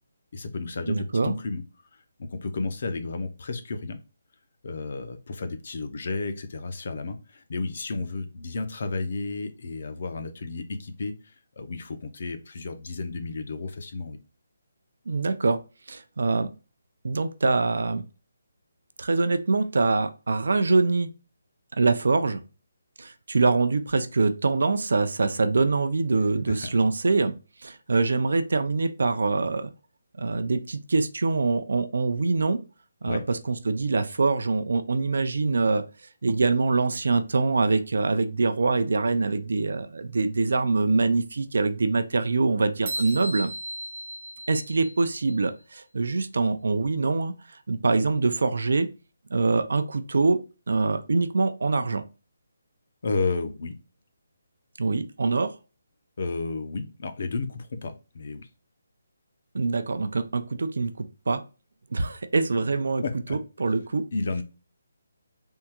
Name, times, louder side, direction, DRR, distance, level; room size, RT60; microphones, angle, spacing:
voice 1, 0.3-1.6 1.9-4.0 4.6-14.2 26.5-26.7 33.0-33.2 53.0-53.8 56.2-58.5 63.0-63.4 64.1-64.4, left 3 dB, 50° left, 8 dB, 0.5 m, -32 dB
voice 2, 0.9-1.4 15.1-15.6 15.9-16.5 17.0-18.0 19.0-21.1 21.8-22.4 23.0-27.3 27.6-29.7 30.2-32.6 33.0-35.9 36.2-43.5 44.5-47.3 47.7-48.9 49.3-50.4 50.7-52.0 54.8-55.5 59.5-61.4 61.9-63.0 63.3-64.0, right 3 dB, 70° right, 10 dB, 0.4 m, -24 dB
sound 1, 42.9-45.5, right 1 dB, 40° right, 0.9 m, -36 dB
3.5 x 2.2 x 2.9 m, 0.31 s
hypercardioid pair, 170°, 0 cm